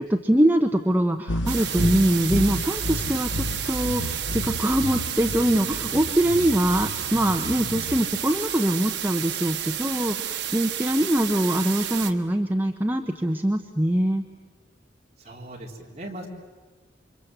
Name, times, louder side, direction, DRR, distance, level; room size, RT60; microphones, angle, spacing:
voice 1, 0.2-14.2, right 1 dB, 10° right, 4 dB, 0.9 m, -23 dB
sound 1, 1.3-8.7, left 1 dB, 85° left, 1.1 m, -31 dB
sound 2, 1.5-12.1, right 10 dB, 70° right, 1.4 m, -31 dB
voice 2, 15.2-16.3, right 1 dB, 35° right, -1 dB, 3.8 m, -38 dB
28.5 x 25.0 x 8.0 m, 1.3 s
head